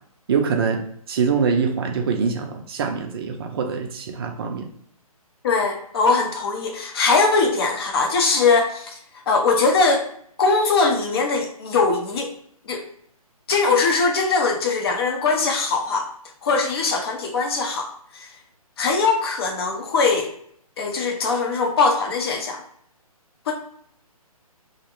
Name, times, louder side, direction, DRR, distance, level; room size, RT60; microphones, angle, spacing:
voice 1, 0.3-0.8 1.1-4.7, right 5 dB, 40° right, 3 dB, 0.4 m, -24 dB
voice 2, 5.4-9.0 9.3-10.1 10.4-12.3 12.7-12.8 13.5-16.1 16.4-18.3 18.8-20.3 20.8-22.6 23.5-23.6, left 4 dB, 40° left, 2 dB, 0.6 m, -21 dB
2.4 x 2.1 x 2.9 m, 0.64 s
hypercardioid pair, 145°, 19 cm